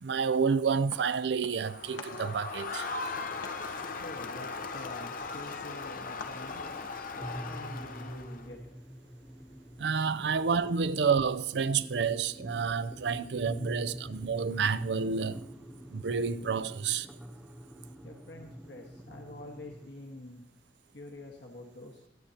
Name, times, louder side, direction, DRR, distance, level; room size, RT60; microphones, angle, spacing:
voice 1, 0.0-2.9 9.8-15.4 15.9-17.1, right 5 dB, 65° right, 0.5 m, -29 dB
sound 1, 0.9-1.7 2.0-6.8, left 3 dB, 90° left, 1.3 m, -49 dB
Crowd, 1.6-8.5, left 4 dB, 50° left, 0.7 m, -38 dB
sound 2, 3.2-19.9, equal, 5° right, 0.9 m, -47 dB
voice 2, 3.6-9.9 15.8-16.0 18.0-20.4 20.9-22.0, left 1 dB, 70° left, 1.5 m, -47 dB
21.5 x 8.9 x 2.9 m
head